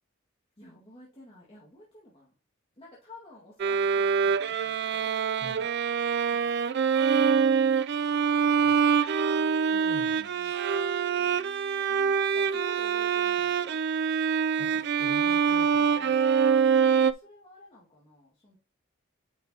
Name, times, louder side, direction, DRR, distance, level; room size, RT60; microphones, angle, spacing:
voice 1, 0.6-2.3 2.8-5.2 6.3-7.8 11.2-13.8 14.6-15.5 17.0-18.6, left 1 dB, 25° left, -6 dB, 2.0 m, -53 dB
Bowed string instrument, 3.6-17.1, right 6 dB, 55° right, 0.4 m, -25 dB
voice 2, 5.4-5.7 8.6-8.8 9.4-10.5 14.6-16.2, left 2 dB, 50° left, 4 dB, 1.0 m, -47 dB
9.9 x 5.4 x 2.9 m, 0.35 s
head